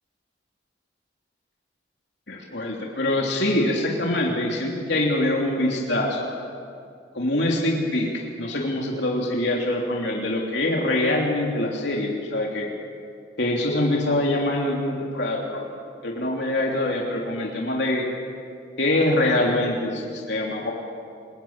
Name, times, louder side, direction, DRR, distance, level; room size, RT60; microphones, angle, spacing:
voice 1, 2.3-6.3 7.1-12.7 13.4-15.6 16.0-18.1 18.8-20.7, left 1 dB, 65° left, -1 dB, 3.2 m, -24 dB
28.5 x 21.0 x 8.8 m, 2.4 s
head